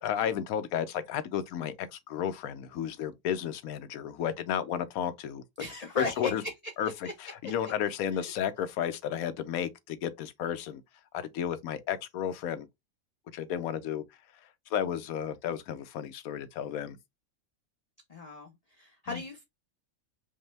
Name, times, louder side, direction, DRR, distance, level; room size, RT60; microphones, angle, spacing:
voice 1, 0.0-5.4 6.0-6.4 6.8-6.9 7.2-10.8 11.1-12.7 13.3-14.0 14.7-17.0 19.1-19.2, left 9 dB, 80° left, 1.1 m, -32 dB
voice 2, 5.6-6.5 7.0-7.1 7.6-7.7 8.1-8.3 18.1-19.4, left 3 dB, 40° left, 0.6 m, -36 dB
5.3 x 2.1 x 3.2 m
omnidirectional pair, 1.5 m